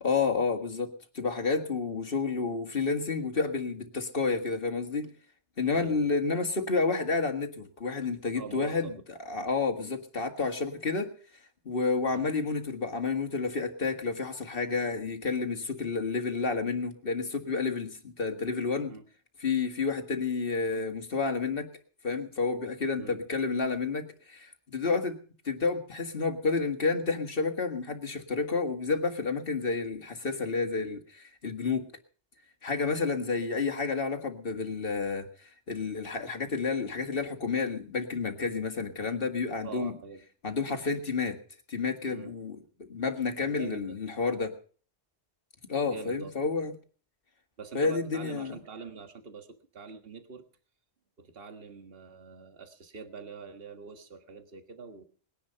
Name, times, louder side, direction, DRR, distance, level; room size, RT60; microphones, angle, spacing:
voice 1, 0.0-5.1 5.6-9.0 9.3-11.1 11.7-18.9 19.4-21.7 22.0-25.2 25.5-31.9 32.6-35.3 35.7-39.9 40.4-41.4 41.7-44.5 45.7-46.7 47.7-48.6, left 4 dB, 50° left, 5 dB, 2.1 m, -30 dB
voice 2, 5.7-6.1 8.3-9.0 9.8-9.9 12.1-12.3 18.9-19.1 23.0-23.2 39.6-40.2 42.1-42.3 43.4-44.0 45.8-46.3 47.6-50.4 51.2-55.0, right 5 dB, 55° right, 7 dB, 1.8 m, -44 dB
20.5 x 10.5 x 5.7 m, 0.43 s
omnidirectional pair, 1.2 m